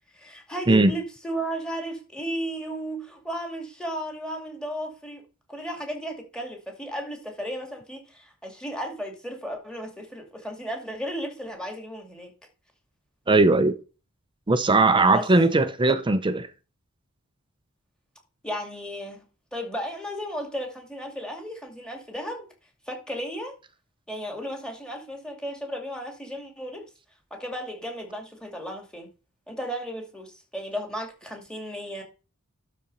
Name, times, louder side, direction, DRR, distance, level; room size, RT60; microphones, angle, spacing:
voice 1, 0.1-5.2 5.5-12.3 15.1-15.3 15.9-16.0 18.4-19.2 19.5-22.5 22.9-23.6 24.1-26.9 27.3-29.1 29.5-32.0, equal, 5° left, 2.4 m, -34 dB
voice 2, 13.3-13.8 14.5-16.5, right 2 dB, 20° right, 0.6 m, -19 dB
12.0 x 4.3 x 5.4 m
head